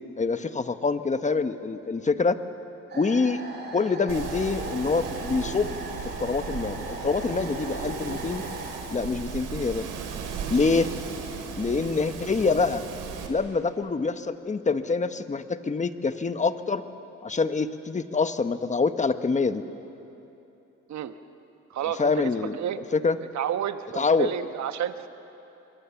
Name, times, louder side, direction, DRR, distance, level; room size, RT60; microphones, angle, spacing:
voice 1, 0.2-2.4 2.9-3.4 3.7-5.8 6.2-8.4 8.9-9.9 10.5-10.9 11.6-12.8 13.3-16.8 17.2-19.6 22.0-22.6 22.9-23.2 24.0-24.3, left 4 dB, 25° left, 10 dB, 1.1 m, -25 dB
sound 1, 2.9-8.8, right 1 dB, 35° right, 4.3 m, -39 dB
Wind, 4.1-13.3, right 6 dB, 90° right, 3.0 m, -35 dB
voice 2, 21.7-22.8 23.3-25.1, right 10 dB, 65° right, 10 dB, 1.2 m, -30 dB
27.5 x 23.0 x 7.1 m, 2.9 s
cardioid pair, 90°, 30 cm